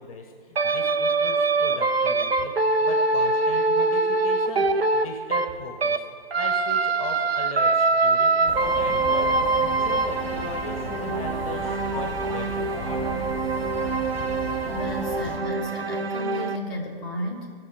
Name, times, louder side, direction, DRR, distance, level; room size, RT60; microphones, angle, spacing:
voice 1, 0.0-6.1 6.3-13.3, left 3 dB, 35° left, 4 dB, 1.0 m, -39 dB
sound 1, 0.6-6.0 6.3-16.6, right 3 dB, 80° right, 0.7 m, -24 dB
sound 2, 8.5-15.4, left 2 dB, 15° left, 1.4 m, -35 dB
voice 2, 14.6-17.5, left 1 dB, ahead, -8 dB, 1.2 m, -33 dB
15.5 x 6.1 x 5.0 m, 2.1 s
figure-of-eight pair, 135°, 30 cm